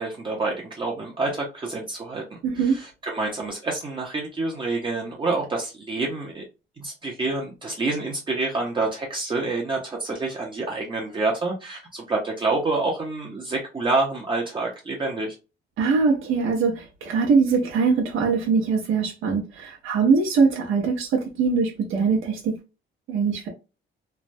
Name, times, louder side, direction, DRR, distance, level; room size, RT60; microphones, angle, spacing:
voice 1, 0.0-6.4 6.8-15.4, right 3 dB, 25° right, 0.6 m, -27 dB
voice 2, 2.4-2.8 15.8-22.5 23.1-23.5, right 5 dB, 90° right, 0.8 m, -22 dB
3.2 x 2.1 x 2.5 m
cardioid pair, 145°, 20 cm